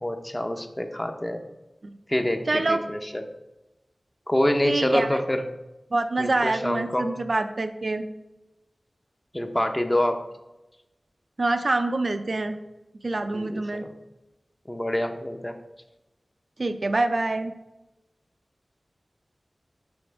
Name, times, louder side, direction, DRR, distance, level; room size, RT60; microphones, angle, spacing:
voice 1, 0.0-1.4 2.1-3.2 4.3-5.4 6.2-7.1 9.3-10.2 13.3-13.9 14.7-15.5, left 1 dB, 15° left, 6 dB, 0.6 m, -26 dB
voice 2, 2.5-2.8 4.6-5.2 5.9-8.0 11.4-12.6 13.0-13.9 16.6-17.5, right 2 dB, 55° right, 8 dB, 0.4 m, -26 dB
5.3 x 4.1 x 4.6 m, 1.0 s
wide cardioid pair, 65°, 0 cm